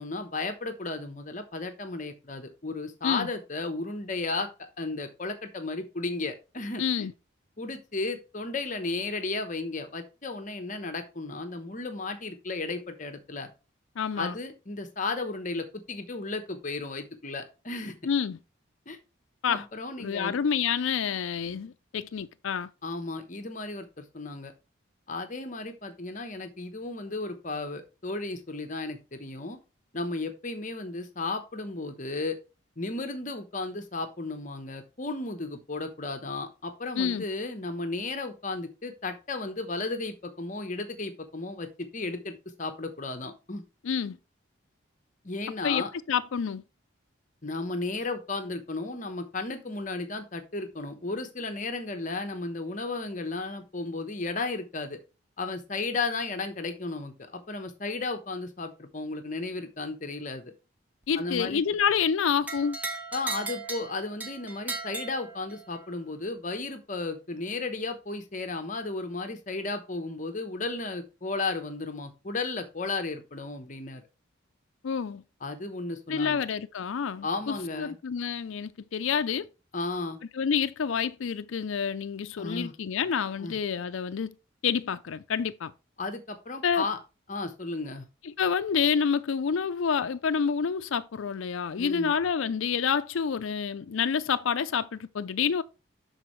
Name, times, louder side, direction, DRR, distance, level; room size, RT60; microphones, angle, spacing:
voice 1, 0.0-4.5 4.8-7.1 7.6-13.5 14.2-17.9 18.9-19.0 19.5-20.4 22.8-24.5 25.1-29.6 29.9-32.4 32.8-43.6 45.2-45.9 47.4-55.0 55.4-60.5 61.1-61.6 63.1-74.0 75.4-76.4 77.2-77.9 79.7-80.2 82.4-82.7 83.4-83.6 86.0-87.0 87.3-88.1 91.8-92.1, left 3 dB, 40° left, 0.9 m, -34 dB
voice 2, 6.8-7.1 14.0-14.3 18.0-18.4 19.4-19.6 20.0-22.7 37.0-37.2 43.8-44.2 45.6-46.6 61.1-62.8 74.8-75.2 76.1-79.5 80.3-84.3 84.6-85.7 86.6-86.8 88.2-95.6, left 7 dB, 75° left, 0.4 m, -28 dB
sound 1, 62.5-65.8, right 3 dB, 10° right, 1.2 m, -37 dB
12.0 x 4.3 x 3.1 m
head